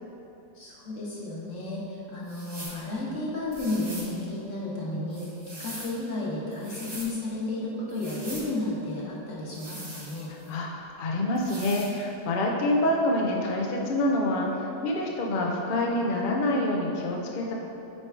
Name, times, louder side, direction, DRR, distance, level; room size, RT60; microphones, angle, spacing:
voice 1, 0.5-10.3, left 2 dB, 50° left, -5 dB, 1.5 m, -33 dB
sound 1, 2.3-2.8 3.5-4.1 5.1-6.0 6.5-7.1 7.9-8.5 9.5-10.5 11.3-11.9, right 1 dB, 25° right, 0.5 m, -42 dB
voice 2, 10.5-17.5, left 1 dB, 80° left, -1 dB, 0.4 m, -27 dB
5.9 x 4.6 x 4.5 m, 2.8 s
omnidirectional pair, 1.8 m